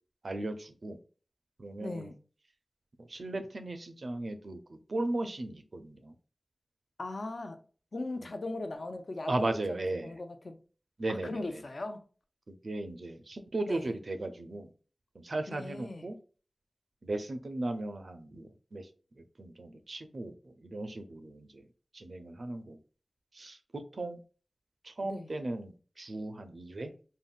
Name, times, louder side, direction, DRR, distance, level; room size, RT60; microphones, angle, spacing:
voice 1, 0.2-1.0 1.6-2.1 3.0-6.2 9.3-10.2 11.0-11.6 12.5-14.7 15.1-16.2 17.0-18.9 19.1-21.7 21.9-22.8 23.3-24.2 24.8-26.9, right 2 dB, 70° right, 0.4 m, -37 dB
voice 2, 1.8-2.1 7.0-7.6 7.9-10.6 11.1-12.0 13.7-13.9 15.5-16.0 25.0-25.3, left 2 dB, 75° left, 0.5 m, -39 dB
3.6 x 2.1 x 2.4 m
wide cardioid pair, 65°, 0 cm